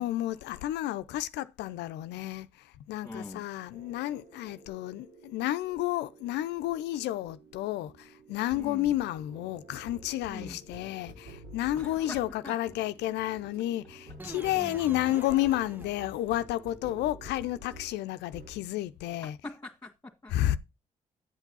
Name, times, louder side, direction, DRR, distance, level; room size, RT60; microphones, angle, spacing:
voice 1, 0.0-19.4 20.3-20.6, left 14 dB, 75° left, 0.6 m, -31 dB
voice 2, 3.0-3.4 8.5-8.9 10.3-10.6 11.8-12.6 19.4-20.3, left 2 dB, 15° left, 1.9 m, -43 dB
sound 1, 3.7-18.0 18.3-18.6, right 1 dB, 65° right, 3.1 m, -50 dB
sound 2, 14.2-16.5, right 2 dB, 10° right, 0.4 m, -45 dB
10.5 x 8.2 x 4.0 m
hypercardioid pair, 45°, 18 cm